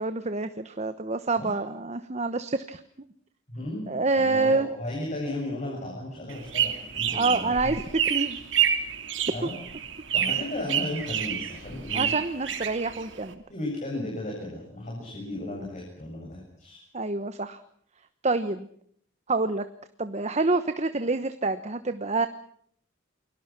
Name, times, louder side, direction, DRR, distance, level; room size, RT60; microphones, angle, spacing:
voice 1, 0.0-2.8 3.9-4.7 7.1-7.8 8.1-8.4 9.4-9.5 11.9-13.4 16.9-17.6 18.2-18.7 19.3-19.6 20.0-22.3, right 3 dB, 35° right, 10 dB, 1.1 m, -27 dB
voice 2, 3.5-3.9 4.2-7.7 9.3-9.6 10.1-12.1 13.5-16.8, left 1 dB, 40° left, -1 dB, 7.6 m, -35 dB
sound 1, 6.3-13.3, right 9 dB, 75° right, 3.0 m, -28 dB
29.5 x 23.0 x 6.1 m, 0.63 s
head